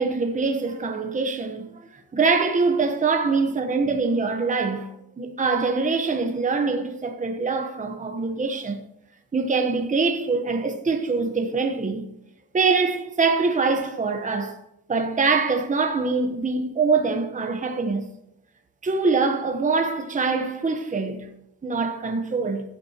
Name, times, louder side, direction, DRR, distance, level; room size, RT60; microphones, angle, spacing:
voice 1, 0.0-1.7 2.1-8.8 9.3-12.0 12.5-14.6 14.9-18.0 18.8-21.3 21.6-22.6, right 4 dB, 20° right, 1.0 m, -24 dB
14.5 x 9.5 x 2.9 m
cardioid pair, 130°, 36 cm